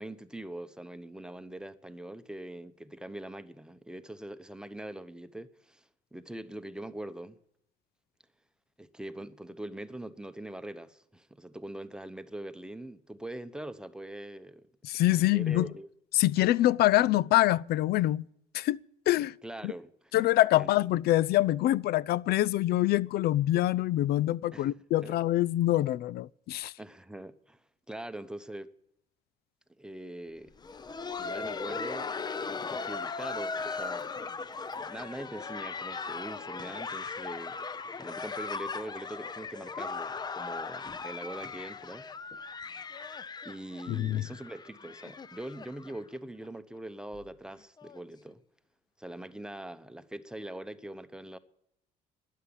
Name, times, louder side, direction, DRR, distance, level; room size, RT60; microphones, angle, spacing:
voice 1, 0.0-7.4 8.8-14.7 15.1-15.9 19.4-20.1 20.6-20.7 24.5-24.7 25.0-25.2 26.8-28.7 29.8-30.5 31.2-32.1 32.4-34.1 34.7-37.6 38.0-42.1 43.4-48.4 49.0-51.4, right 1 dB, 5° right, 0.9 m, -42 dB
voice 2, 14.8-15.7 16.1-18.2 18.5-18.8 19.1-19.3 19.6-19.7 20.1-26.7 43.9-44.2, left 15 dB, 70° left, 0.5 m, -25 dB
Laughter, 30.5-46.2 46.4-46.5 47.1-47.2 47.8-48.0 49.1-49.2, left 4 dB, 25° left, 0.6 m, -38 dB
12.5 x 10.0 x 9.5 m
cardioid pair, 110°, 17 cm